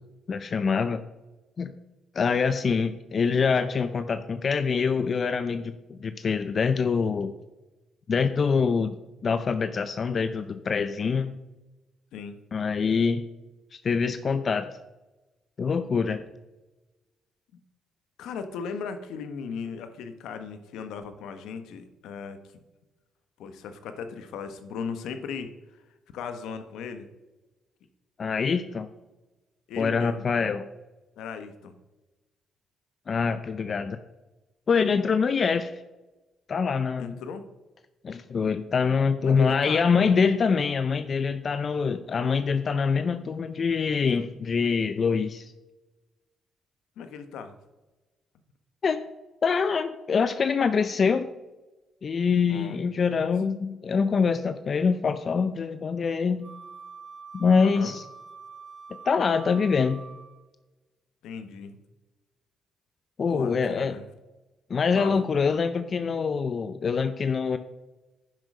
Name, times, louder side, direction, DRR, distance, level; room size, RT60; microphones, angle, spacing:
voice 1, 0.3-1.0 1.6-1.7 2.1-7.3 8.1-8.9 9.2-11.4 12.5-13.3 13.7-14.7 15.6-16.2 28.2-28.9 29.8-30.7 33.1-34.0 34.7-35.8 36.5-37.2 38.0-45.5 48.8-49.0 49.4-51.3 52.0-56.6 57.3-58.0 59.0-60.0 63.2-64.0 64.7-67.6, left 5 dB, 45° left, 11 dB, 0.5 m, -25 dB
voice 2, 18.2-22.6 23.4-25.5 26.1-27.1 29.7-30.3 31.2-31.8 37.0-37.5 39.2-40.1 47.0-47.6 52.5-52.8 53.2-53.3 57.6-57.9 61.2-61.8 63.3-64.0 64.9-65.2, left 6 dB, 85° left, 9 dB, 1.1 m, -37 dB
Wind instrument woodwind instrument, 56.4-60.5, right 5 dB, 50° right, 1.9 m, -45 dB
9.8 x 7.6 x 5.4 m, 1.1 s
cardioid pair, 90°, 0 cm